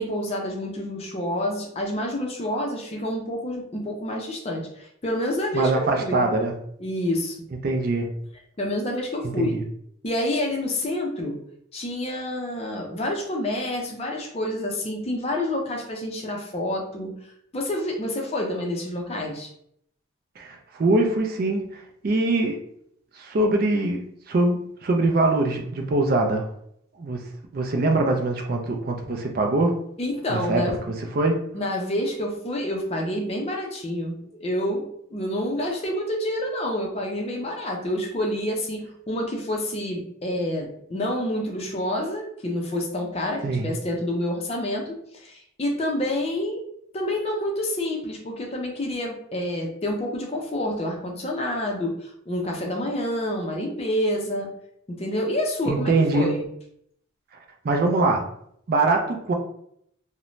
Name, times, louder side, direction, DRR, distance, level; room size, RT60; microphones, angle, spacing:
voice 1, 0.0-6.2 6.8-7.4 8.6-9.6 10.0-11.4 11.7-17.1 17.5-19.5 30.0-30.8 31.5-34.1 34.4-46.6 46.9-54.5 54.9-56.4, left 1 dB, 30° left, 1 dB, 0.4 m, -28 dB
voice 2, 5.5-6.5 7.6-8.1 9.4-9.6 20.4-22.6 23.2-26.4 27.0-27.2 27.5-29.8 30.3-31.4 43.4-43.7 55.7-56.3 57.6-58.3 58.7-59.3, right 2 dB, 45° right, 2 dB, 0.4 m, -23 dB
2.5 x 2.0 x 3.0 m, 0.70 s
head